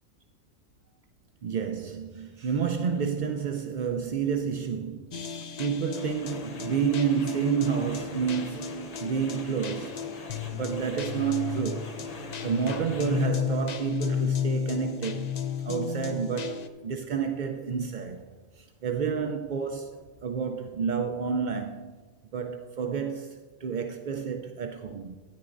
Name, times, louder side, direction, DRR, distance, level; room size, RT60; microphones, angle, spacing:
voice 1, 1.4-10.0 10.5-12.0 12.4-15.3 15.6-18.2 18.6-21.9 22.3-25.2, right 6 dB, 65° right, 0.4 m, -30 dB
sound 1, 5.1-16.7, left 9 dB, 70° left, 0.4 m, -34 dB
sound 2, 6.0-13.3, left 2 dB, 35° left, 0.7 m, -43 dB
12.5 x 9.9 x 2.5 m
omnidirectional pair, 1.4 m